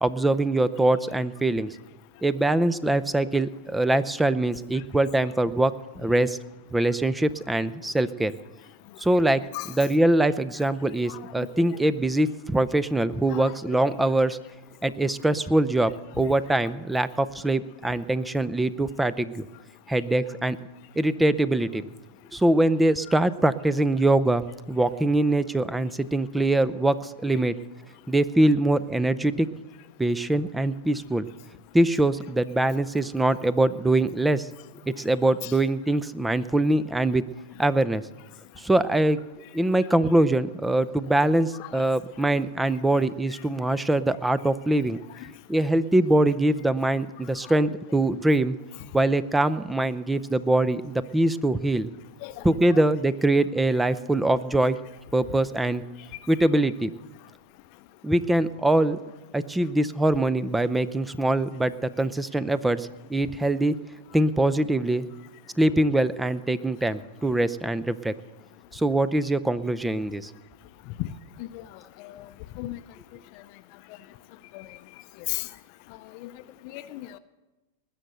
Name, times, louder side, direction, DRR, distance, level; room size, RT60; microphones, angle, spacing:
voice 1, 0.0-1.8 2.2-6.4 6.7-8.3 9.0-9.4 9.8-14.4 14.8-19.4 19.9-20.6 21.0-21.9 22.3-27.6 28.1-29.5 30.0-31.3 31.7-34.5 34.9-37.2 37.6-38.0 38.6-39.2 39.5-45.0 45.5-48.6 48.9-51.9 52.4-54.8 55.1-55.8 56.3-56.9 58.0-59.0 59.3-63.7 64.1-65.0 65.6-68.1 68.7-70.3, right 1 dB, 5° right, 15 dB, 0.7 m, -23 dB
voice 2, 11.1-11.8 13.3-13.5 13.8-13.9 35.4-35.5 41.6-41.8 52.2-52.8 71.0-71.1 71.4-71.6 72.0-72.3 72.6-72.8 74.5-74.7 75.3-75.5 76.2-76.3 76.6-77.2, left 17 dB, 55° left, 12 dB, 0.7 m, -36 dB
20.0 x 6.8 x 7.8 m, 1.1 s
hypercardioid pair, 115°, 0 cm